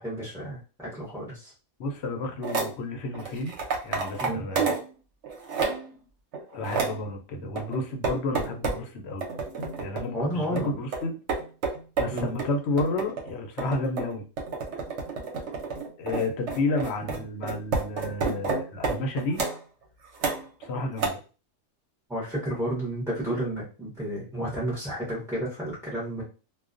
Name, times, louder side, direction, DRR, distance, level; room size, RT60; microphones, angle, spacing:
voice 1, 0.0-1.5 4.2-4.4 10.1-10.8 12.1-12.3 17.0-17.1 22.1-26.2, right 1 dB, 5° right, -6 dB, 0.5 m, -31 dB
voice 2, 1.8-3.5 3.8-4.7 6.5-9.3 9.8-11.1 12.0-14.2 16.0-19.4 20.6-21.2, left 2 dB, 60° left, 3 dB, 0.7 m, -31 dB
sound 1, 2.4-2.7 3.1-4.9 5.2-5.9 6.3-7.0 7.6-8.8 9.2-10.1 10.6-19.6 20.1-20.7 21.0-21.1, right 4 dB, 60° right, 0.9 m, -30 dB
2.3 x 2.2 x 2.4 m, 0.34 s
omnidirectional pair, 1.5 m